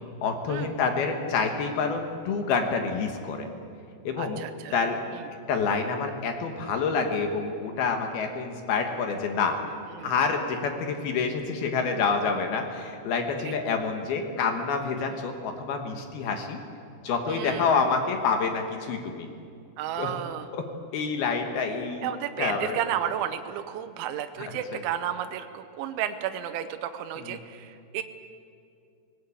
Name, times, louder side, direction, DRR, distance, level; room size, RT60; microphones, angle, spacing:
voice 1, 0.2-3.5 4.0-4.4 4.7-5.0 5.5-9.6 10.0-16.6 17.0-19.3 20.0-20.2 20.5-20.6 20.9-22.1 22.4-22.8 24.4-24.8 27.2-27.4, left 5 dB, 65° left, 4 dB, 3.0 m, -27 dB
voice 2, 4.2-4.7 10.0-10.1 13.5-13.6 17.3-17.7 19.8-20.5 22.0-28.0, right 10 dB, 85° right, 8 dB, 3.2 m, -32 dB
20.0 x 18.5 x 8.6 m, 2.4 s
omnidirectional pair, 5.3 m